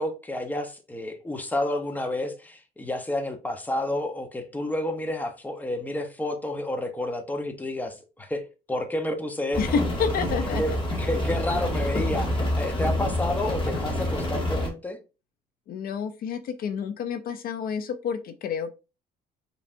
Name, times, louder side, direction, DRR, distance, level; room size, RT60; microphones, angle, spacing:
voice 1, 0.0-8.4 8.7-9.8 10.6-10.7 11.0-15.0, left 1 dB, 10° left, 0.8 m, -30 dB
Rain, 9.5-14.7, left 1 dB, 30° left, 1.7 m, -27 dB
voice 2, 9.6-10.6 15.7-18.7, left 6 dB, 60° left, 0.6 m, -29 dB
5.1 x 3.2 x 2.6 m
cardioid pair, 110°, 17 cm